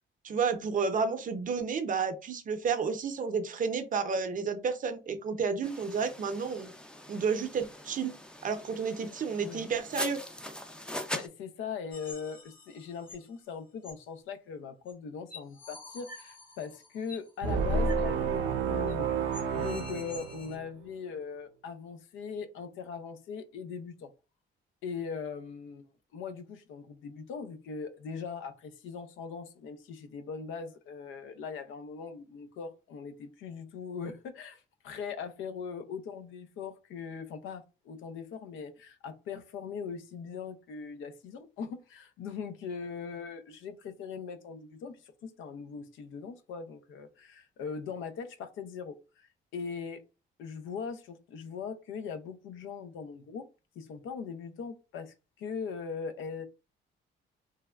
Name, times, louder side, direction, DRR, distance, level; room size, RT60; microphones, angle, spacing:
voice 1, 0.2-6.7 7.1-8.1 8.4-10.2, right 5 dB, 40° right, 0.6 m, -31 dB
sound 1, 5.6-11.3, left 1 dB, 5° left, 0.4 m, -41 dB
voice 2, 11.1-19.1 19.5-24.1 24.8-25.9 26.1-50.0 50.4-53.5 53.8-56.4, left 6 dB, 85° left, 0.5 m, -40 dB
sound 2, 11.9-13.3 13.8-13.9 14.9-15.0 15.3-17.3 17.8-18.0 18.3-18.4 18.9-19.0 19.3-20.6, left 3 dB, 45° left, 0.9 m, -48 dB
sound 3, 17.4-20.8, right 5 dB, 90° right, 0.5 m, -30 dB
3.3 x 2.1 x 2.3 m
cardioid pair, 90°, 20 cm